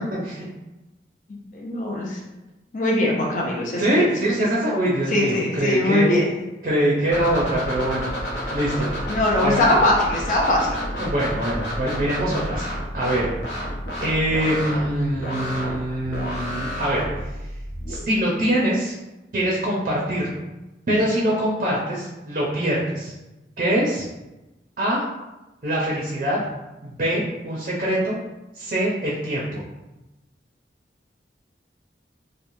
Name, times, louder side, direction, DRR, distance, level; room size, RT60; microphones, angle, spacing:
voice 1, 0.1-0.4 3.8-6.1 6.6-8.1 8.5-8.9 9.4-9.6 11.0-12.7 12.9-13.3 14.0-17.0 17.9-18.9 19.3-20.4 20.9-23.1 23.6-24.1 24.8-25.0 25.6-26.4 26.8-28.1 28.5-29.6, right 1 dB, 45° right, -5 dB, 0.5 m, -23 dB
voice 2, 1.5-2.2 2.7-4.1 5.1-6.3 9.1-10.7, left 1 dB, 45° left, -2 dB, 0.4 m, -21 dB
sound 1, 7.1-17.9, equal, 90° left, 0.7 m, -30 dB
3.0 x 2.1 x 2.6 m, 1.0 s
head